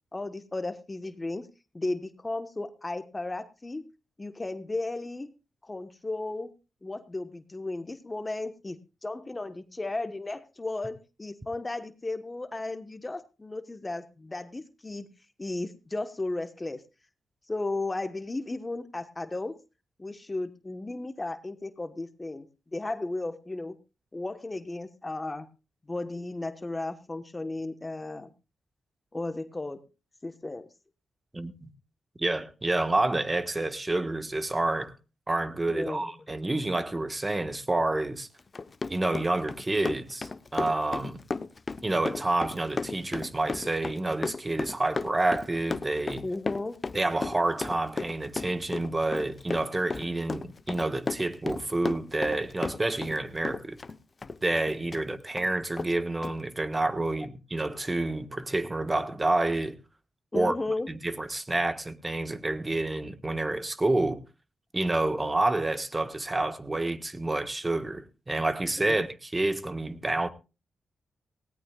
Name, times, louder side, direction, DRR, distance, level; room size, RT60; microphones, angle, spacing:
voice 1, 0.1-1.5 1.7-3.8 4.2-5.3 5.6-6.5 6.8-15.1 15.4-16.8 17.5-19.6 20.0-22.5 22.7-23.8 24.1-25.5 25.9-28.3 29.1-29.8 30.2-30.7 35.7-36.1 46.2-46.8 60.3-60.9 68.9-69.0, left 2 dB, 25° left, 1.2 m, -34 dB
voice 2, 31.3-31.7 32.2-35.0 35.3-38.3 38.9-41.2 41.8-46.2 46.9-53.8 54.4-59.8 60.3-60.5 60.9-64.2 64.7-70.3, right 2 dB, 25° right, 1.4 m, -28 dB
Run, 38.4-53.2 53.4-55.0 55.4-55.5 55.8-55.9 56.2-56.3, left 4 dB, 40° left, 0.8 m, -34 dB
18.5 x 17.5 x 2.4 m
supercardioid pair, 55°, 0 cm